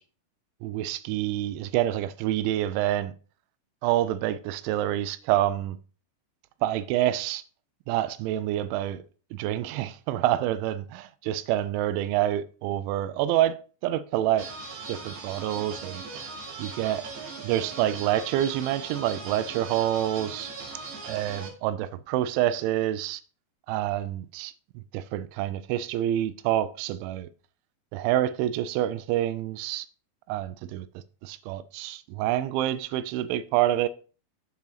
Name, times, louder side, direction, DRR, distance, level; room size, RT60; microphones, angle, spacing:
voice 1, 0.6-3.1 3.8-5.8 6.6-7.4 7.9-9.0 9.3-13.6 13.8-14.5 14.9-16.0 16.6-17.1 17.4-20.5 21.1-23.2 23.7-27.3 27.9-29.9 30.3-30.9 31.2-33.9, right 13 dB, 85° right, 3.0 m, -27 dB
sound 1, 14.4-21.5, right 4 dB, 55° right, 2.5 m, -39 dB
7.4 x 7.3 x 3.9 m
omnidirectional pair, 5.3 m